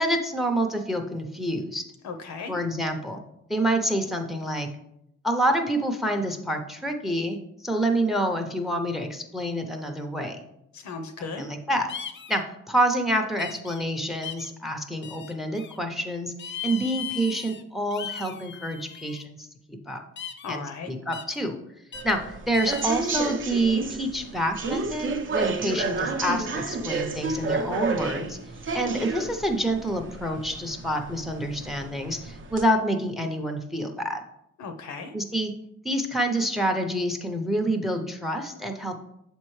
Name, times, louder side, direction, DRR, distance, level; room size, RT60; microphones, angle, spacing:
voice 1, 0.0-1.8 2.5-3.2 3.5-4.7 5.2-7.4 7.6-10.4 11.4-11.9 12.3-12.4 12.7-20.0 20.5-20.6 20.9-21.6 22.0-28.4 28.7-34.2 35.1-35.5 35.8-39.0, right 1 dB, ahead, 6 dB, 0.7 m, -27 dB
voice 2, 2.0-2.5 10.7-11.5 20.4-20.9 34.6-35.1, left 4 dB, 65° left, 7 dB, 0.8 m, -36 dB
sound 1, 11.9-12.4 13.4-13.8 14.2-14.5 15.0-15.8 16.4-17.6 17.9-19.2 20.2-20.6 21.1-21.4 21.9-22.2 22.5-23.3, left 8 dB, 40° left, 0.5 m, -38 dB
sound 2, 21.9-32.6, right 3 dB, 40° right, 0.7 m, -31 dB
6.9 x 4.4 x 3.2 m, 0.80 s
cardioid pair, 90°, 30 cm